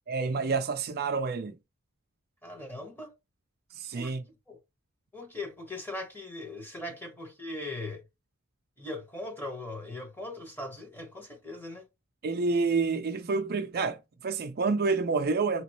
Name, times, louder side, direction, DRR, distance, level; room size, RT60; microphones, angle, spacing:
voice 1, 0.1-1.6 3.7-4.2 12.2-15.6, right 4 dB, 45° right, 0.5 m, -28 dB
voice 2, 2.4-3.1 3.9-4.1 4.5-4.6 5.1-8.0 8.8-11.8, left 2 dB, 10° left, 1.1 m, -39 dB
5.0 x 3.0 x 3.0 m
head